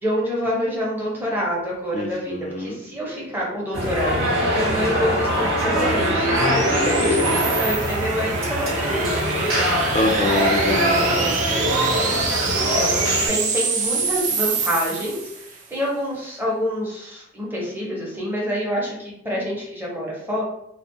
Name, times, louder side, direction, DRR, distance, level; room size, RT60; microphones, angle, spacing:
voice 1, 0.0-9.7 11.0-20.4, equal, 10° right, -4 dB, 0.7 m, -27 dB
voice 2, 1.9-2.8 6.4-7.6 9.9-11.0, left 2 dB, 35° left, 2 dB, 0.4 m, -24 dB
sound 1, 3.0-15.6, right 4 dB, 35° right, 0.3 m, -27 dB
sound 2, 3.7-13.3, equal, 85° right, 1.1 m, -23 dB
2.4 x 2.0 x 2.6 m, 0.77 s
head